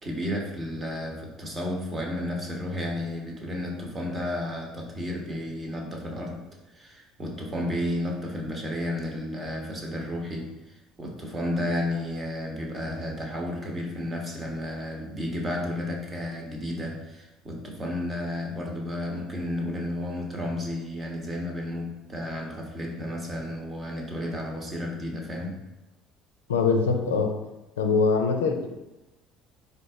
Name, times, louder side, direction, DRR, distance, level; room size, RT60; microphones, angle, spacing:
voice 1, 0.0-6.4 6.7-25.5, left 1 dB, 30° right, 0 dB, 1.0 m, -32 dB
voice 2, 26.5-27.4 27.8-28.7, left 4 dB, 85° left, 4 dB, 0.4 m, -23 dB
3.9 x 2.6 x 3.5 m, 1.0 s
hypercardioid pair, 65°, 0 cm